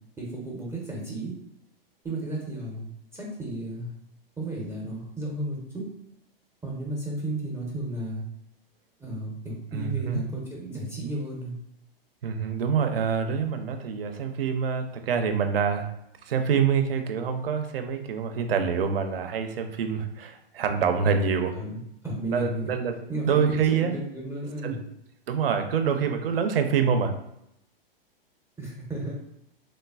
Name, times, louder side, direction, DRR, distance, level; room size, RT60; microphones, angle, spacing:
voice 1, 0.2-1.3 2.0-3.9 4.4-5.9 6.6-8.2 9.0-11.5 21.5-21.8 22.0-22.8 23.1-24.8 28.6-29.1, right 1 dB, 10° right, -4 dB, 0.4 m, -33 dB
voice 2, 9.7-10.2 12.2-15.9 16.3-21.5 22.3-22.9 23.2-23.9 24.6-24.8 25.3-27.1, right 6 dB, 75° right, 7 dB, 0.5 m, -26 dB
3.1 x 2.0 x 2.3 m, 0.80 s
hypercardioid pair, 110°, 30 cm